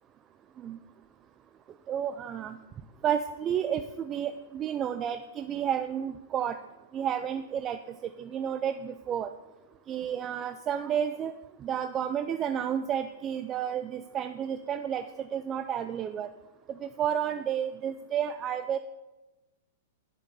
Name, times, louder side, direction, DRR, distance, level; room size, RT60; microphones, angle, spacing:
voice 1, 1.9-2.6 3.0-6.6 6.9-9.3 9.9-11.3 11.6-16.3 16.8-18.8, right 9 dB, 30° right, 9 dB, 0.5 m, -31 dB
9.1 x 7.3 x 5.4 m, 1.1 s
hypercardioid pair, 110°, 0 cm